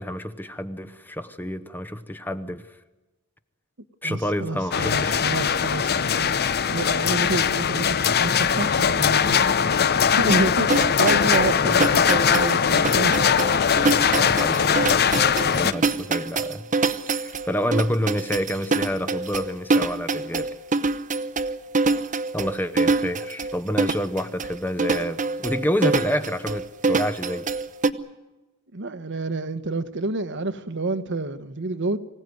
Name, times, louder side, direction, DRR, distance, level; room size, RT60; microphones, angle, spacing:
voice 1, 0.0-2.7 4.0-5.3 11.6-11.8 14.2-16.6 17.1-20.6 22.3-27.5, equal, 10° left, 0.9 m, -28 dB
voice 2, 4.0-6.3 6.7-9.4 10.0-13.1 15.6-15.7 28.7-32.0, right 2 dB, 55° right, 1.1 m, -28 dB
sound 1, 4.7-15.7, left 7 dB, 45° left, 0.7 m, -21 dB
sound 2, 10.3-27.9, right 3 dB, 35° right, 0.9 m, -25 dB
25.0 x 17.0 x 9.4 m
head